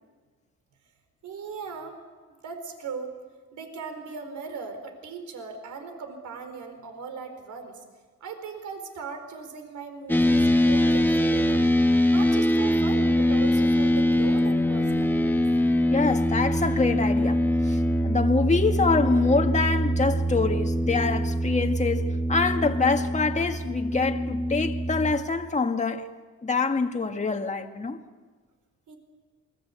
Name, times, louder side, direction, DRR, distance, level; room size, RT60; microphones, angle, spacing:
voice 1, 1.2-2.0 2.4-3.1 3.5-7.8 8.2-11.7 12.1-15.4 28.9-29.0, right 5 dB, 75° right, 4.3 m, -38 dB
sound 1, 10.1-25.1, equal, 5° left, 1.5 m, -23 dB
voice 2, 15.9-26.1 26.4-28.0, left 4 dB, 25° left, 1.8 m, -25 dB
28.5 x 22.5 x 8.3 m
cardioid pair, 90°, 30 cm